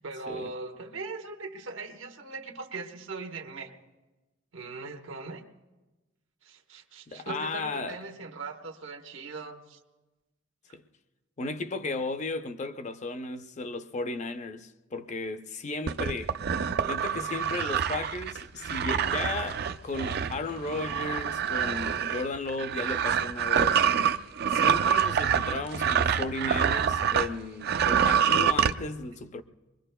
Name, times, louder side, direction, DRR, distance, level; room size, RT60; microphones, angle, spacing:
voice 1, 0.0-3.7 4.5-5.4 6.4-9.8, right 3 dB, 75° right, 1.1 m, -40 dB
voice 2, 7.1-8.0 10.7-10.8 11.4-16.4 16.9-23.8 24.5-29.4, left 3 dB, 35° left, 0.5 m, -35 dB
sound 1, 15.9-27.3 27.6-28.7, right 8 dB, 55° right, 0.4 m, -26 dB
25.0 x 22.5 x 2.2 m
head